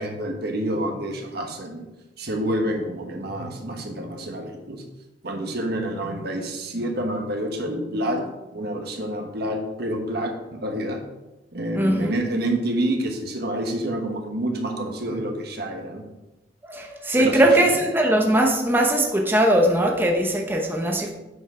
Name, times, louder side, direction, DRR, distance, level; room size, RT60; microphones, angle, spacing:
voice 1, 0.0-1.9 2.2-4.8 5.2-11.0 11.5-16.0 17.2-17.5, right 1 dB, 60° right, 3 dB, 1.3 m, -28 dB
voice 2, 11.7-12.2 16.6-21.1, right 1 dB, 10° right, 1 dB, 0.9 m, -20 dB
8.7 x 5.2 x 4.9 m, 1.0 s
head